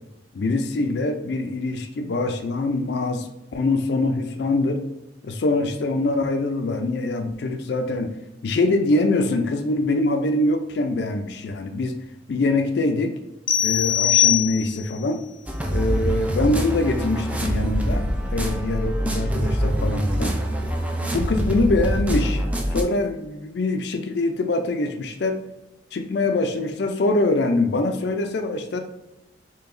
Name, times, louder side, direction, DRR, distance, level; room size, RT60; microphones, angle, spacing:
voice 1, 0.3-4.8 5.2-8.1 8.4-12.0 12.3-13.1 13.6-15.2 15.7-18.0 18.3-20.3 21.1-22.4 22.7-25.4 25.9-28.8, left 2 dB, 60° left, 6 dB, 0.4 m, -23 dB
sound 1, 13.5-15.0, left 11 dB, 30° left, 0.7 m, -21 dB
sound 2, 15.5-22.8, equal, 10° right, 0.3 m, -24 dB
4.7 x 2.8 x 2.5 m, 0.93 s
head